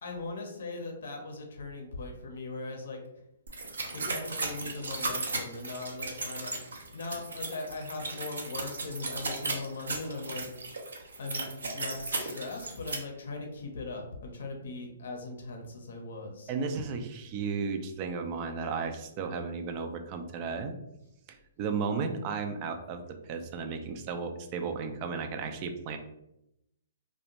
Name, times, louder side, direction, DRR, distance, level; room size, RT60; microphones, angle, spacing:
voice 1, 0.0-3.0 3.9-6.5 6.9-10.5 11.1-16.5, left 3 dB, 70° left, 2 dB, 0.6 m, -39 dB
sound 1, 3.5-12.9, right 3 dB, 80° right, 0.6 m, -36 dB
voice 2, 16.5-20.7 21.6-23.0 23.3-26.0, right 5 dB, 35° right, 6 dB, 0.3 m, -34 dB
2.4 x 2.1 x 2.9 m, 0.84 s
hypercardioid pair, 135°, 0 cm